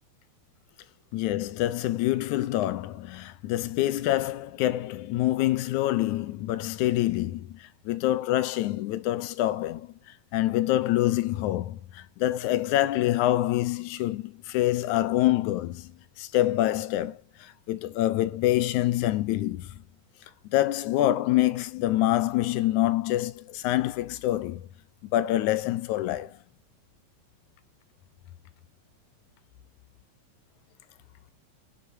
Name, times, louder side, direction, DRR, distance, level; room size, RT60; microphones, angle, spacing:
voice 1, 1.1-7.6 7.9-9.9 10.3-15.9 16.2-19.7 20.5-24.7 25.0-26.3, left 15 dB, 75° left, 2.0 m, -26 dB
18.5 x 7.8 x 2.7 m
omnidirectional pair, 3.7 m